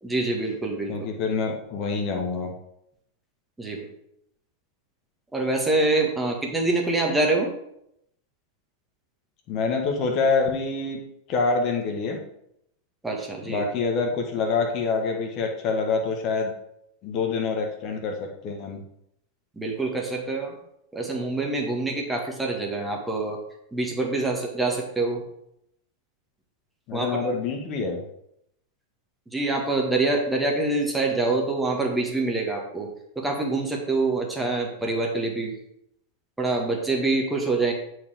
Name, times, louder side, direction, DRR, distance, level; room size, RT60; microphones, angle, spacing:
voice 1, 0.0-0.9 3.6-3.9 5.3-7.5 13.0-13.7 19.6-20.6 20.9-23.4 23.7-25.2 26.9-27.1 29.3-35.5 36.4-37.7, right 2 dB, 5° right, 0 dB, 1.7 m, -25 dB
voice 2, 0.9-2.5 9.5-11.0 11.3-12.2 13.4-16.5 17.0-18.8 26.9-28.0 34.8-34.9, left 4 dB, 40° left, 2 dB, 1.4 m, -26 dB
9.2 x 4.8 x 5.0 m, 0.77 s
figure-of-eight pair, 90°, 0 cm